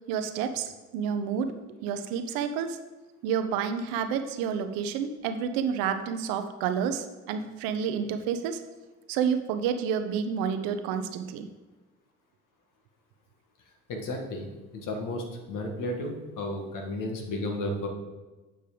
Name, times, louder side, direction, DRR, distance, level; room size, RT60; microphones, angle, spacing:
voice 1, 0.1-1.5 1.8-2.8 3.2-8.6 9.1-11.5, right 7 dB, 75° right, 8 dB, 0.9 m, -29 dB
voice 2, 13.9-14.5 14.7-17.9, left 1 dB, 60° left, 2 dB, 2.0 m, -33 dB
8.6 x 5.4 x 5.1 m, 1.2 s
hypercardioid pair, 60°, 35 cm